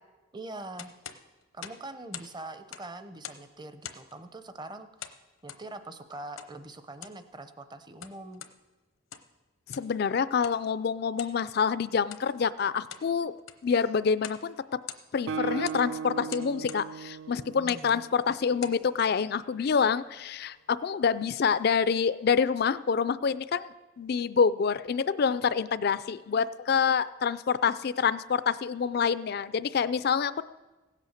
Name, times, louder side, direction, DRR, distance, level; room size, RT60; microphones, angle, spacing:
voice 1, 0.3-0.9 1.5-5.1 5.4-8.4 17.6-18.0, right 2 dB, 20° right, 10 dB, 0.7 m, -43 dB
sound 1, 0.8-2.3 2.6-3.5 3.8-4.2 5.0-5.7 6.4-6.5 6.9-7.2 7.8-8.6 9.0-9.4 9.7-10.0 10.4-10.6 11.2-11.4 12.0-12.3 12.7-13.1 13.4-13.7 14.2-14.5 14.7-15.3 15.6-15.8 16.3-16.9 17.6-17.9 18.4-18.8, left 9 dB, 90° left, 0.9 m, -43 dB
voice 2, 9.7-13.3 13.6-14.5 15.1-30.4, left 6 dB, 50° left, 15 dB, 0.4 m, -27 dB
Guitar, 15.3-18.9, right 6 dB, 65° right, 0.3 m, -37 dB
16.5 x 8.3 x 6.5 m, 1.2 s
head